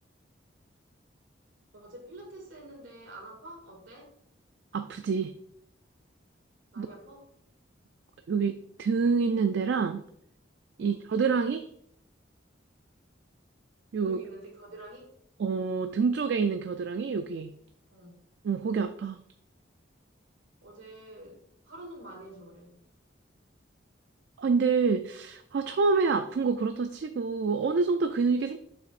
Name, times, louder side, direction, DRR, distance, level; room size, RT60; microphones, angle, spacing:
voice 1, 1.7-4.1 6.7-7.3 10.8-11.0 14.0-15.2 17.9-18.2 20.6-21.4 21.6-22.8, right 1 dB, 80° right, 1 dB, 2.2 m, -47 dB
voice 2, 4.7-5.3 6.8-6.9 8.3-10.0 10.8-11.7 13.9-14.2 15.4-17.5 18.4-19.2 24.4-28.6, right 5 dB, 65° right, 8 dB, 0.3 m, -27 dB
7.7 x 5.9 x 2.5 m, 0.69 s
head